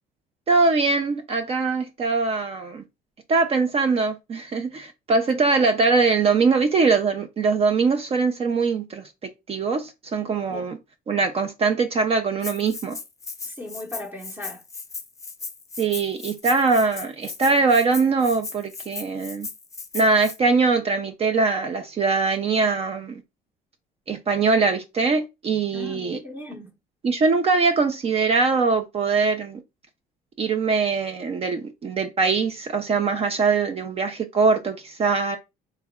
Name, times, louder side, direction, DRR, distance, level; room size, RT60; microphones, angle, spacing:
voice 1, 0.5-2.8 3.3-9.0 9.5-10.8 11.1-13.0 15.8-19.5 19.9-23.2 24.1-26.2 27.0-29.6 30.4-35.4, right 4 dB, 35° right, 0.5 m, -22 dB
Rattle (instrument), 12.4-20.4, left 4 dB, 20° left, 0.5 m, -37 dB
voice 2, 13.4-14.6 25.7-26.7, left 2 dB, 10° right, 0.8 m, -37 dB
3.4 x 2.1 x 3.5 m
cardioid pair, 110°, 17 cm